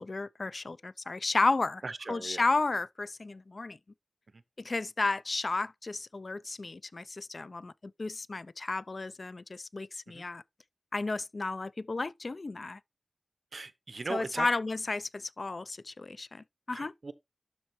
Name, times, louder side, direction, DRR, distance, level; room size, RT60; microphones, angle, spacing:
voice 1, 0.0-1.8 2.1-3.8 4.6-10.4 10.9-12.8 14.1-16.9, left 3 dB, 65° left, 0.3 m, -33 dB
voice 2, 1.8-2.4 10.1-10.2 13.5-14.5 16.7-17.1, right 3 dB, 80° right, 0.7 m, -38 dB
12.0 x 4.2 x 3.0 m
wide cardioid pair, 55°, 0 cm